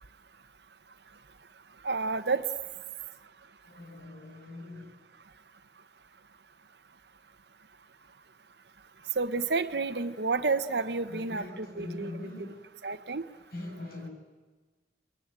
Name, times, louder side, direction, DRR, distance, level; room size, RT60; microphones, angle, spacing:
voice 1, 1.8-2.4 9.2-12.1 12.8-13.2, right 4 dB, 70° right, 9 dB, 1.1 m, -30 dB
voice 2, 3.7-4.8 11.1-12.6 13.5-14.1, left 1 dB, 60° left, 2 dB, 6.6 m, -42 dB
29.0 x 21.5 x 9.0 m, 1.4 s
head